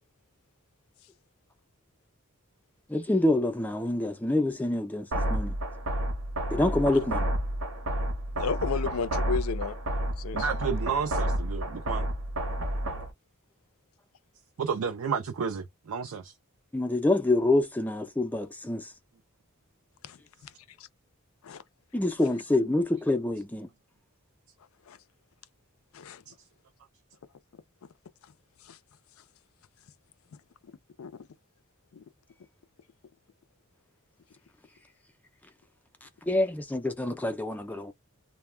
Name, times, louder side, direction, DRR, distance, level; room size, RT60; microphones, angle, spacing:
voice 1, 2.9-5.6 6.5-7.3 16.7-18.9 21.9-23.7 36.0-37.9, left 2 dB, 10° left, 0.4 m, -26 dB
sound 1, 5.1-13.1, right 1 dB, 65° right, 0.8 m, -30 dB
voice 2, 8.4-9.8 10.2-10.5 20.0-20.2 20.4-20.5 20.8-20.9 21.4-21.6 24.9-25.0 25.9-26.2 28.6-28.8 30.3-30.4 31.0-31.1 31.9-32.0, left 6 dB, 75° left, 0.4 m, -33 dB
voice 3, 10.3-12.1 14.6-16.3, right 6 dB, 85° right, 0.4 m, -31 dB
2.2 x 2.1 x 3.2 m
head